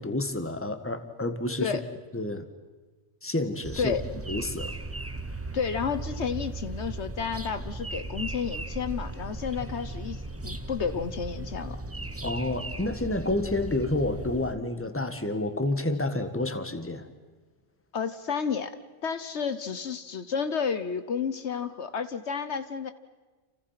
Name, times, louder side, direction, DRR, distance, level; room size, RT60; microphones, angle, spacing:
voice 1, 0.0-1.7 2.1-2.5 3.2-3.9 4.3-4.7 12.2-17.1, left 2 dB, 10° left, 9 dB, 1.6 m, -29 dB
sound 1, 3.6-14.5, right 2 dB, 15° right, 0.9 m, -37 dB
voice 2, 5.5-11.8 17.9-18.7 19.0-22.9, left 6 dB, 70° left, 12 dB, 1.3 m, -31 dB
30.0 x 28.0 x 5.8 m, 1.3 s
omnidirectional pair, 1.2 m